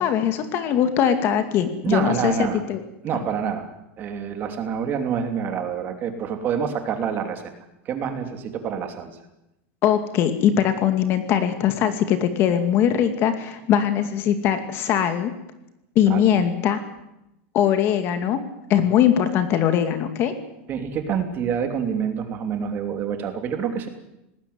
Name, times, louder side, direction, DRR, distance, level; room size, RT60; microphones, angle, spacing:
voice 1, 0.0-2.8 9.8-15.3 16.0-16.8 17.5-18.4 18.7-20.3, left 9 dB, 35° left, 8 dB, 2.3 m, -21 dB
voice 2, 1.8-2.6 3.0-3.7 4.0-7.4 7.8-9.1 16.1-16.3 20.7-23.9, right 7 dB, 30° right, 6 dB, 2.9 m, -27 dB
19.5 x 17.0 x 9.6 m, 0.87 s
supercardioid pair, 160°, 7 cm